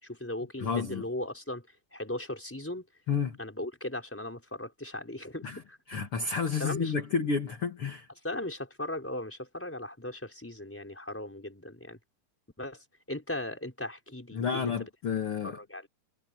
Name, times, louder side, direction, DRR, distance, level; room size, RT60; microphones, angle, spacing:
voice 1, 0.0-2.9 3.4-5.8 6.6-6.9 8.2-12.0 12.6-14.9 15.4-15.9, left 1 dB, 5° left, 4.5 m, -38 dB
voice 2, 0.6-1.0 3.1-3.4 5.4-5.6 5.9-8.1 14.3-15.6, left 5 dB, 45° left, 2.5 m, -30 dB
omnidirectional pair, 3.8 m